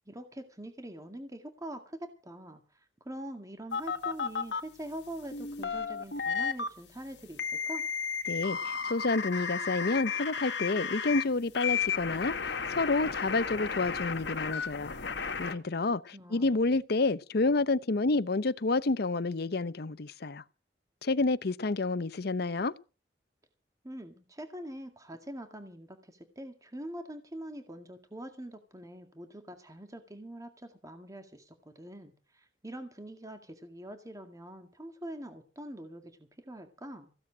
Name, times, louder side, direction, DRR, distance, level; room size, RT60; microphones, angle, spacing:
voice 1, 0.1-7.4 7.7-7.8 15.9-16.6 23.8-37.1, right 1 dB, 20° right, 2.0 m, -44 dB
sound 1, 3.7-4.6 5.3-6.7 7.4-11.2 11.5-15.5, left 6 dB, 80° left, 1.8 m, -33 dB
voice 2, 8.3-14.9 15.4-20.4 21.0-22.7, left 3 dB, 60° left, 0.7 m, -29 dB
16.0 x 7.3 x 8.6 m
head